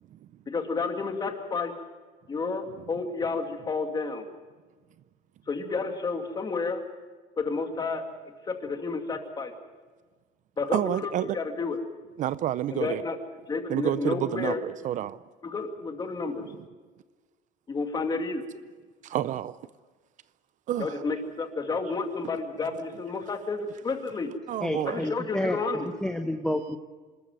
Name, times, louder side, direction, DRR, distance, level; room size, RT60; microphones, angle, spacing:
voice 1, 0.5-1.7 2.3-4.3 5.5-6.8 7.4-8.0 8.5-9.5 10.6-11.8 12.7-13.2 13.5-14.6 15.4-16.4 17.7-18.5 20.8-24.3 24.9-25.9, left 4 dB, 25° left, 2.4 m, -31 dB
voice 2, 10.7-11.4 12.2-13.0 13.7-15.2 16.5-16.6 19.0-19.6 20.7-21.0 24.5-25.1, right 12 dB, 45° right, 0.5 m, -29 dB
voice 3, 24.6-25.6 26.0-26.8, left 1 dB, 5° left, 0.9 m, -29 dB
26.5 x 13.5 x 9.1 m
cardioid pair, 150°, 17 cm